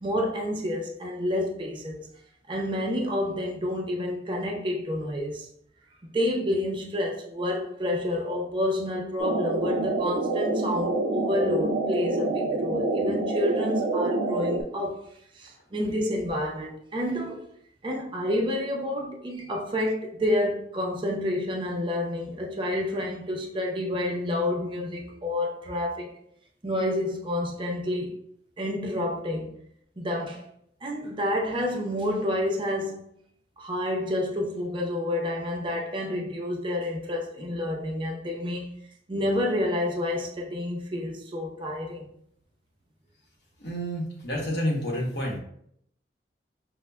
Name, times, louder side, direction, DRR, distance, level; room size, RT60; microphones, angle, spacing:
voice 1, 0.0-2.1 2.5-5.5 6.0-15.0 15.3-17.4 17.8-26.1 26.6-28.2 28.6-29.5 30.0-30.4 30.8-33.1 33.6-38.7 39.1-42.1, left 1 dB, 30° right, 0.5 m, -29 dB
sound 1, 9.2-14.6, right 2 dB, 80° right, 0.5 m, -27 dB
voice 2, 43.6-45.4, equal, 65° left, 0.9 m, -29 dB
5.2 x 2.1 x 2.2 m
head